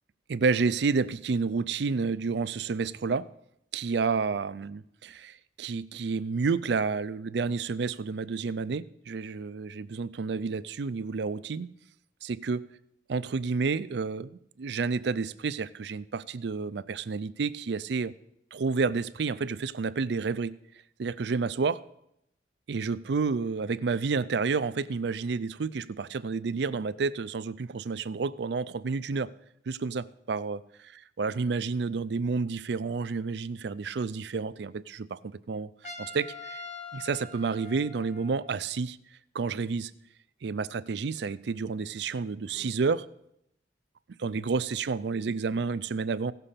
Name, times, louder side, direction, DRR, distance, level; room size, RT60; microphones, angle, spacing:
voice 1, 0.3-3.3 3.7-11.7 12.2-12.6 13.1-18.1 18.5-20.6 21.0-21.8 22.7-29.3 29.7-30.6 31.2-35.7 36.0-36.6 36.9-39.0 39.3-39.9 40.4-43.1 44.2-46.3, right 4 dB, 65° right, 0.4 m, -30 dB
Trumpet, 35.8-38.5, left 3 dB, 35° left, 1.5 m, -43 dB
16.0 x 6.8 x 5.7 m
head